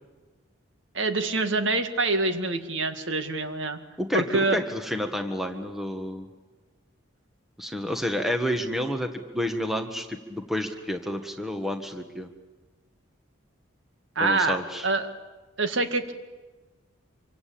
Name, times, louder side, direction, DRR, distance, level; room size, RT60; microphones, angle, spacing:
voice 1, 0.9-3.8 4.1-4.6 14.2-14.6 14.8-15.1 15.6-16.1, right 3 dB, 70° right, 8 dB, 2.0 m, -25 dB
voice 2, 4.0-6.3 7.6-12.3 14.2-14.9, equal, ahead, 5 dB, 1.6 m, -30 dB
26.5 x 24.5 x 8.7 m, 1.2 s
head